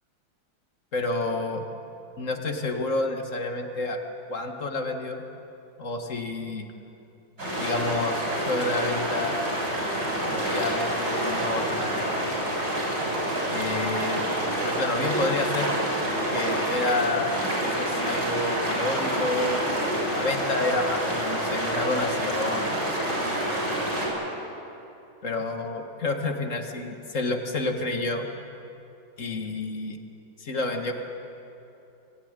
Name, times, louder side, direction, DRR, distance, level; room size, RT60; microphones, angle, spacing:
voice 1, 0.9-1.6 2.2-4.0 4.3-5.2 5.8-6.7 7.6-9.4 10.2-12.0 13.5-14.2 14.6-15.7 16.3-23.1 25.2-28.3 29.2-30.0 30.4-30.9, left 2 dB, 40° left, 4 dB, 2.0 m, -29 dB
sound 1, 7.4-24.1, right 1 dB, 55° right, 7.9 m, -27 dB
24.0 x 16.0 x 9.7 m, 2.8 s
omnidirectional pair, 2.1 m